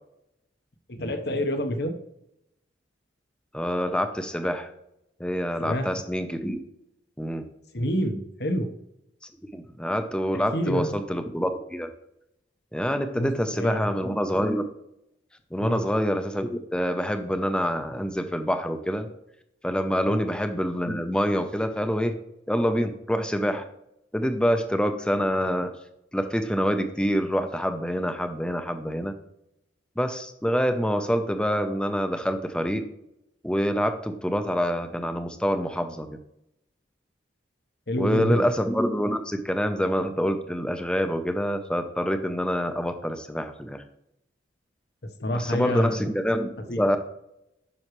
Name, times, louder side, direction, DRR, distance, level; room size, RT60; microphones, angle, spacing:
voice 1, 0.9-1.9 5.6-5.9 7.7-8.7 10.3-10.9 13.1-14.1 15.6-15.8 20.1-20.2 37.9-38.4 45.2-46.0 46.7-46.9, equal, 60° left, 7 dB, 1.0 m, -28 dB
voice 2, 3.5-4.7 5.2-6.6 7.2-7.4 9.5-11.9 12.7-14.7 15.5-19.1 19.6-22.1 22.5-23.6 24.1-25.7 26.1-29.1 30.0-32.8 33.4-36.1 38.0-43.8 45.3-46.5 46.8-47.0, equal, 5° left, 8 dB, 0.7 m, -26 dB
9.7 x 6.3 x 3.1 m, 0.82 s
head